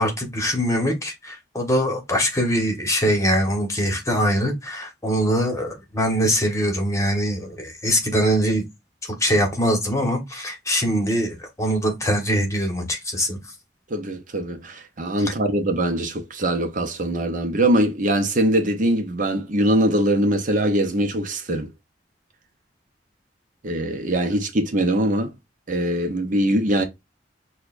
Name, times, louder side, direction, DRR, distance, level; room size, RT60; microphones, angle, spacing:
voice 1, 0.0-8.6 9.2-13.4 15.2-15.3, equal, 15° left, 1.2 m, -22 dB
voice 2, 13.9-21.7 23.6-25.3 25.7-26.9, right 1 dB, 45° right, 0.7 m, -22 dB
6.4 x 2.3 x 2.5 m
head